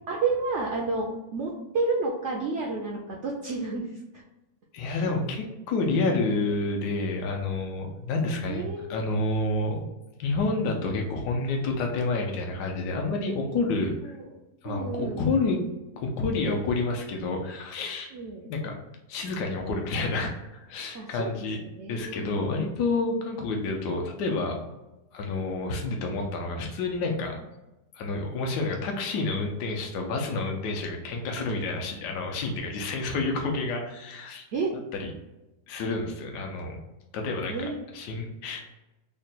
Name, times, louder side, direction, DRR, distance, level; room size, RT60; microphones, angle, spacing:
voice 1, 0.1-3.9 4.8-5.1 8.5-9.2 14.1-14.2 14.6-15.2 18.1-18.5 20.9-21.3 21.8-22.3 31.4-31.6 34.5-34.7 37.5-37.8, right 3 dB, 70° right, -2 dB, 0.6 m, -30 dB
voice 2, 4.7-9.8 10.2-14.1 14.6-15.6 16.0-18.1 18.5-18.7 19.1-24.7 25.1-27.4 27.9-34.5 35.0-35.1 35.7-36.8 37.1-38.6, left 3 dB, 85° left, 2 dB, 1.2 m, -29 dB
3.7 x 2.2 x 4.0 m, 0.97 s
omnidirectional pair, 1.7 m